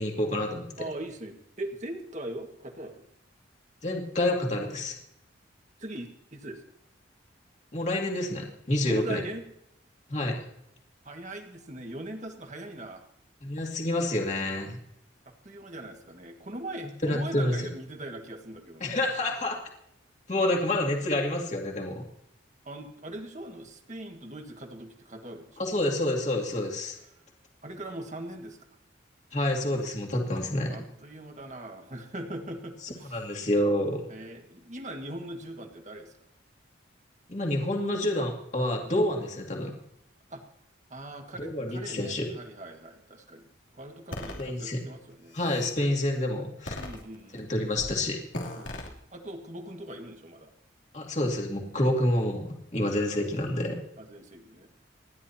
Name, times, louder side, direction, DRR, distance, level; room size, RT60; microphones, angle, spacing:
voice 1, 0.0-0.7 3.8-4.9 7.7-9.2 10.1-10.4 13.4-14.8 17.0-17.7 18.8-19.6 20.3-22.1 25.6-27.0 29.3-30.8 33.0-34.0 37.3-39.7 41.4-42.3 44.4-44.8 45.3-46.8 47.3-48.2 50.9-53.8, left 1 dB, 35° left, 0 dB, 2.5 m, -28 dB
voice 2, 0.8-3.0 5.8-6.6 8.9-9.5 11.0-13.0 15.3-19.0 22.7-25.7 27.6-28.6 30.7-33.3 34.1-36.1 40.3-40.4 40.9-43.5 43.7-45.4 46.8-47.7 48.6-50.5 54.0-54.7, right 1 dB, 40° right, 4 dB, 1.8 m, -41 dB
sound 1, 44.1-44.4 45.1-45.8 46.7-47.4 47.7-48.0 48.3-48.9, left 1 dB, 80° left, 3.0 m, -37 dB
28.5 x 11.0 x 2.8 m, 0.78 s
head